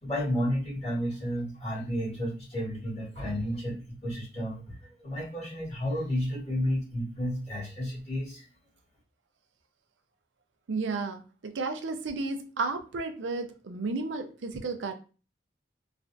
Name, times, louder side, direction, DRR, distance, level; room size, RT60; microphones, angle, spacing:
voice 1, 0.0-8.5, equal, 35° left, -5 dB, 1.5 m, -32 dB
voice 2, 10.7-14.9, right 3 dB, 85° right, 6 dB, 0.5 m, -33 dB
3.2 x 2.5 x 2.5 m, 0.35 s
head